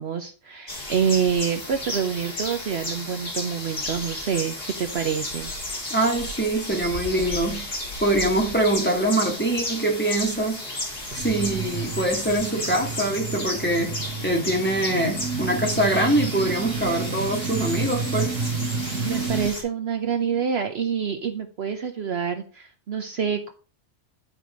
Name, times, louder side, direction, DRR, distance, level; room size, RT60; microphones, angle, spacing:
voice 1, 0.0-5.5 11.1-11.2 19.0-23.5, right 7 dB, 60° right, 1.0 m, -27 dB
sound 1, 0.7-19.6, left 1 dB, 45° left, 3.1 m, -33 dB
voice 2, 5.9-7.7 8.0-10.6 11.1-14.0 14.2-18.4, right 1 dB, 10° left, 2.2 m, -24 dB
sound 2, 11.2-19.5, right 4 dB, 85° right, 1.8 m, -30 dB
11.0 x 4.9 x 5.1 m
omnidirectional pair, 1.3 m